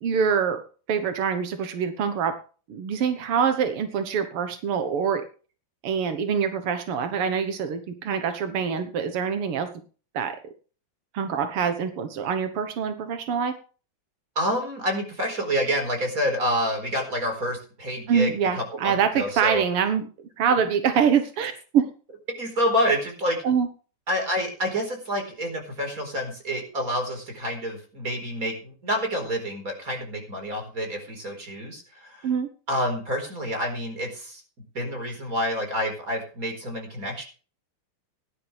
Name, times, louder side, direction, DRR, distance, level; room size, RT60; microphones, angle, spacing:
voice 1, 0.0-0.6 0.9-2.4 2.7-5.2 5.8-9.7 10.1-10.4 11.1-13.6 18.1-20.0 20.4-21.9 23.4-23.7 32.2-32.5, right 7 dB, 75° right, 8 dB, 1.3 m, -25 dB
voice 2, 14.3-19.6 22.4-23.4 24.1-32.3 32.7-34.4 34.7-37.2, equal, 20° right, 3 dB, 4.5 m, -28 dB
17.5 x 11.5 x 3.4 m, 0.37 s
omnidirectional pair, 4.3 m